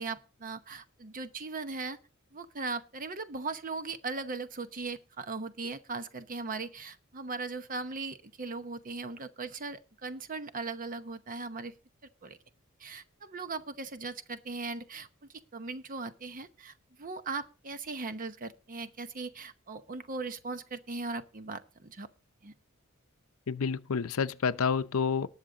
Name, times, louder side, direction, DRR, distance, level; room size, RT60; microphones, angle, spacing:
voice 1, 0.0-2.0 2.3-11.7 12.2-12.4 12.8-15.1 15.5-16.7 17.0-22.1 22.4-22.5, right 3 dB, 40° right, 0.9 m, -38 dB
voice 2, 23.5-25.3, left 6 dB, 75° left, 0.6 m, -29 dB
19.0 x 6.7 x 3.9 m
head